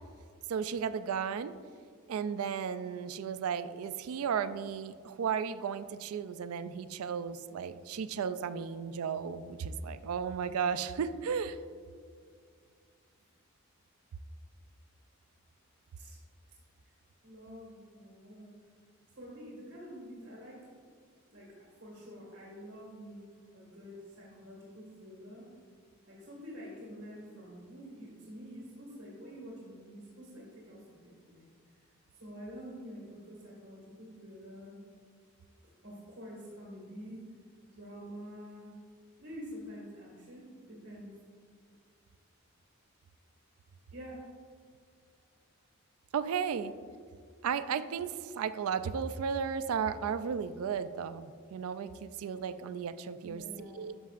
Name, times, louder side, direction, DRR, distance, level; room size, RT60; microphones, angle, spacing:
voice 1, 0.5-1.5 2.1-11.6 46.1-46.7 47.4-53.4 53.8-53.9, right 7 dB, 80° right, 12 dB, 0.3 m, -34 dB
voice 2, 17.2-18.5 19.1-20.7 21.3-23.2 23.5-25.4 26.1-31.5 32.2-34.8 35.8-37.3 37.7-38.8 39.2-41.1 43.9-44.3 53.2-53.9, equal, 55° right, -6 dB, 1.7 m, -47 dB
11.0 x 6.2 x 2.5 m, 2.1 s
head